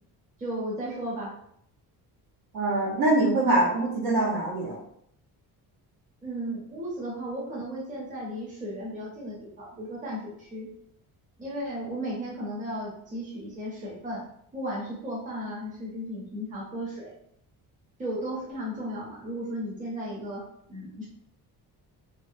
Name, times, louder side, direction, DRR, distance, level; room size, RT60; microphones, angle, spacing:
voice 1, 0.4-1.3 6.2-10.7 11.4-14.2 14.5-17.1 18.0-21.1, equal, 20° right, -5 dB, 0.6 m, -35 dB
voice 2, 2.5-4.8, right 2 dB, 65° right, -3 dB, 0.9 m, -24 dB
2.7 x 2.1 x 2.5 m, 0.71 s
cardioid pair, 165°, 39 cm